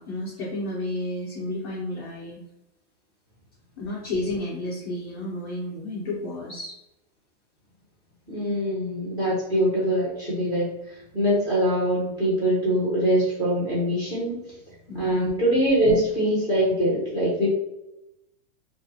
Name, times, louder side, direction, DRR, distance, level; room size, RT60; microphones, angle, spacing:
voice 1, 0.0-2.4 3.8-6.7 14.9-15.3, left 1 dB, 20° left, -5 dB, 0.3 m, -31 dB
voice 2, 8.3-10.7 11.1-14.4 14.9-17.5, equal, 10° right, -6 dB, 1.0 m, -23 dB
2.5 x 2.3 x 2.8 m, 0.90 s
supercardioid pair, 160°, 33 cm